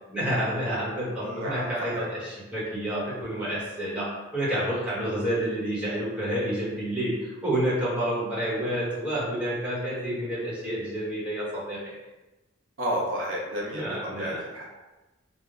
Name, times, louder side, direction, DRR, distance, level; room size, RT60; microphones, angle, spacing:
voice 1, 0.1-11.9 13.7-14.4, right 1 dB, 5° right, -9 dB, 1.0 m, -29 dB
voice 2, 1.2-1.7 1.9-2.1 12.8-13.8 14.2-14.6, equal, 80° right, -3 dB, 0.7 m, -31 dB
3.5 x 2.1 x 3.7 m, 1.1 s
head